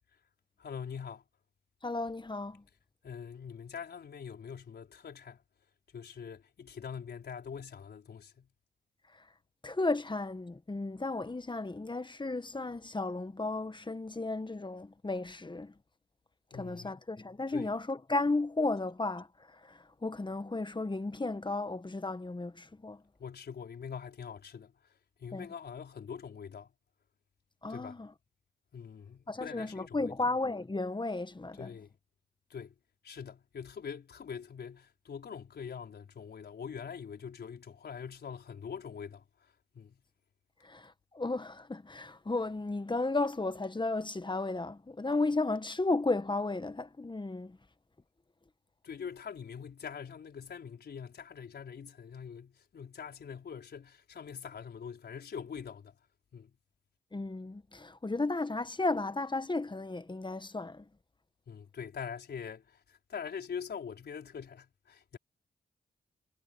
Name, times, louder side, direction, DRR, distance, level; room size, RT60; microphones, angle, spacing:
voice 1, 0.6-1.2 3.0-5.4 5.9-8.5 16.5-17.0 17.5-17.7 23.2-24.7 25.2-26.7 27.7-28.0 28.7-30.1 31.6-31.9 32.5-32.7 33.0-39.2 39.7-40.0 48.8-55.9 56.3-56.5 61.5-65.2, left 7 dB, 70° left, 4.8 m, -43 dB
voice 2, 1.8-2.6 9.6-15.7 16.5-19.3 19.5-23.0 25.3-25.5 27.6-28.1 29.3-31.7 40.6-47.6 57.1-60.8, left 2 dB, 25° left, 1.6 m, -34 dB
supercardioid pair, 40°, 17 cm